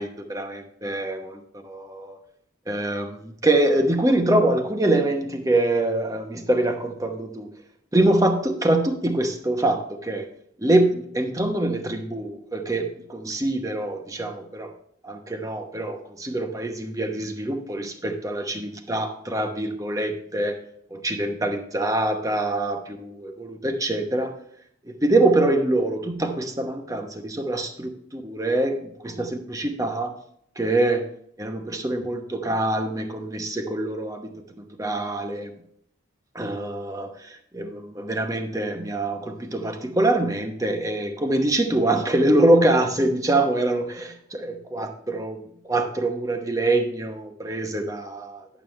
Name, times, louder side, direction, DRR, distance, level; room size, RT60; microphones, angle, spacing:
voice 1, 0.0-2.2 2.7-7.5 7.9-10.3 10.6-14.7 15.0-20.6 20.9-24.4 25.0-28.8 29.0-30.1 30.6-31.1 31.4-34.3 34.8-35.5 36.3-37.1 37.5-45.4 45.7-48.4, right 1 dB, 15° right, 5 dB, 0.9 m, -24 dB
10.5 x 7.2 x 3.2 m, 0.71 s
head